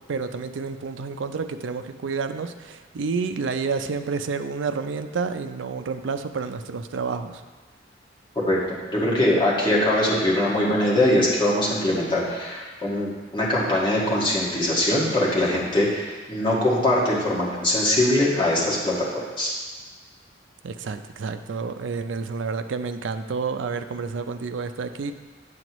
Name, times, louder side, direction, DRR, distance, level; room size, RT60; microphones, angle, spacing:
voice 1, 0.1-7.4 20.6-25.1, right 5 dB, 80° right, 8 dB, 0.4 m, -29 dB
voice 2, 8.4-19.0 19.4-19.5, left 1 dB, 25° left, -6 dB, 1.8 m, -22 dB
7.7 x 7.6 x 3.0 m, 1.3 s
head